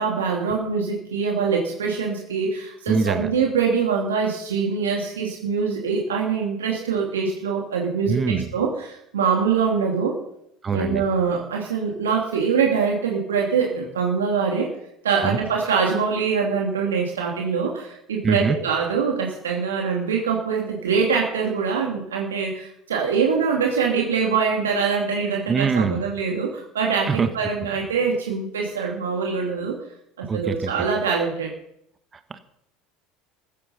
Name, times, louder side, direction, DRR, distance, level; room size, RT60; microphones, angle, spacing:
voice 1, 0.0-10.2 10.7-14.7 15.0-29.8 30.2-31.5, right 5 dB, 80° right, 0 dB, 2.7 m, -24 dB
voice 2, 2.9-3.3 8.1-8.5 10.6-11.0 15.2-15.4 18.2-18.6 25.5-26.0 27.1-27.3 30.3-30.7 32.3-32.4, right 5 dB, 30° right, 10 dB, 1.5 m, -23 dB
15.0 x 14.0 x 5.7 m, 0.75 s
hypercardioid pair, 70°, 0 cm